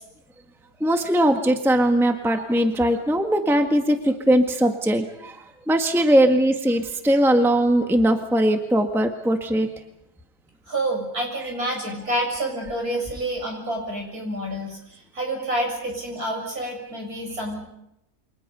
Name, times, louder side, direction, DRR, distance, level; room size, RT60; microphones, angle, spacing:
voice 1, 0.8-5.4 5.7-9.7, right 1 dB, ahead, 5 dB, 1.5 m, -20 dB
voice 2, 10.7-17.6, right 1 dB, 65° right, 1 dB, 7.8 m, -28 dB
29.0 x 24.5 x 5.6 m, 0.83 s
omnidirectional pair, 1.7 m